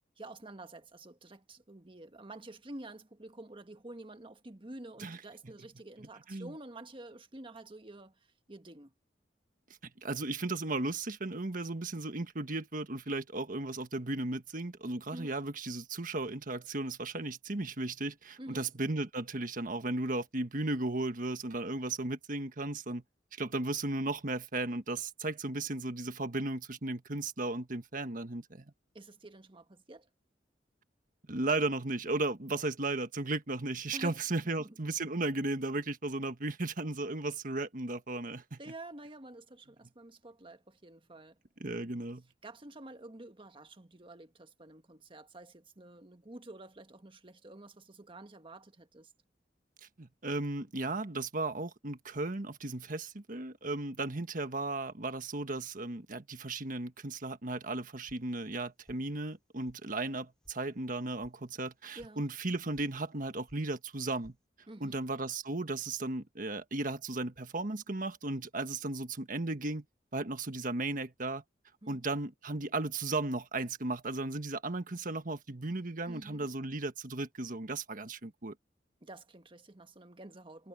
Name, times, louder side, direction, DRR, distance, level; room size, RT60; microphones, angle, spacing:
voice 1, 0.2-8.9 15.1-15.3 18.4-18.7 28.9-30.1 33.9-34.2 34.6-34.8 38.6-41.4 42.4-49.1 61.9-62.2 64.7-65.0 71.8-72.0 76.0-76.5 79.0-80.7, right 1 dB, 30° right, 1.5 m, -49 dB
voice 2, 9.8-23.0 23.3-28.7 31.3-38.6 41.6-42.2 50.0-64.3 64.8-69.8 70.1-71.4 71.9-78.5, right 2 dB, 50° right, 1.5 m, -35 dB
sound 1, 58.1-58.6 58.9-59.4 59.6-59.8 60.1-60.6 60.8-61.3 61.6-62.1 62.4-62.9 63.1-63.6 63.9-64.4, equal, 5° left, 6.4 m, -61 dB
head